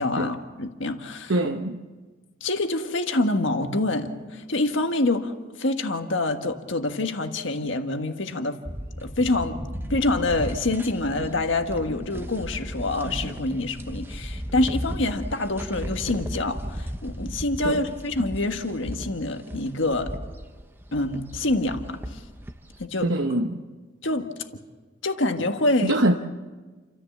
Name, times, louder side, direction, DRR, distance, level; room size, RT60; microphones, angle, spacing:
voice 1, 0.0-1.3 2.4-8.6 9.0-9.6 9.9-20.1 20.9-22.2 22.8-23.4 24.0-24.3 25.0-26.0, left 2 dB, 75° left, 6 dB, 1.6 m, -26 dB
voice 2, 1.3-1.8 17.6-17.8 23.0-23.6 25.8-26.1, right 1 dB, 70° right, 4 dB, 0.9 m, -23 dB
sound 1, 8.6-22.8, equal, 10° right, 0.8 m, -35 dB
29.0 x 14.0 x 7.3 m, 1.4 s
head